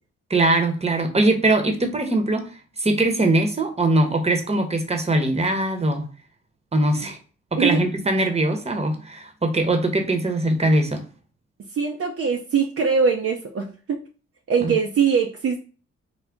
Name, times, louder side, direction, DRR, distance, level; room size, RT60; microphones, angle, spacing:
voice 1, 0.3-2.5 2.8-6.1 6.7-7.2 7.5-11.0 14.6-14.7, right 2 dB, 20° right, 4 dB, 1.0 m, -21 dB
voice 2, 7.6-7.9 11.7-14.0 14.5-15.6, right 6 dB, 45° right, 2 dB, 0.6 m, -22 dB
3.8 x 2.1 x 3.5 m, 0.37 s
supercardioid pair, 50°, 31 cm